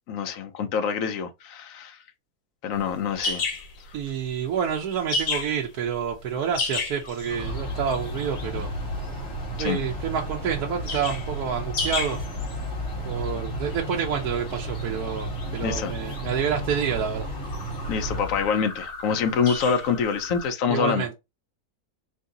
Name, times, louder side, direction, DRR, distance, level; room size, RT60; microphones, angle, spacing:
voice 1, 0.1-2.0 2.6-3.4 9.6-9.8 15.6-15.9 17.9-21.0, left 6 dB, 65° left, 1.1 m, -26 dB
sound 1, 2.7-20.5, left 3 dB, 90° left, 1.7 m, -34 dB
voice 2, 3.9-8.7 9.6-12.2 13.0-17.3 20.7-21.1, right 7 dB, 90° right, 1.2 m, -28 dB
sound 2, 7.2-18.6, equal, 50° left, 1.7 m, -33 dB
3.9 x 2.7 x 3.7 m
omnidirectional pair, 1.6 m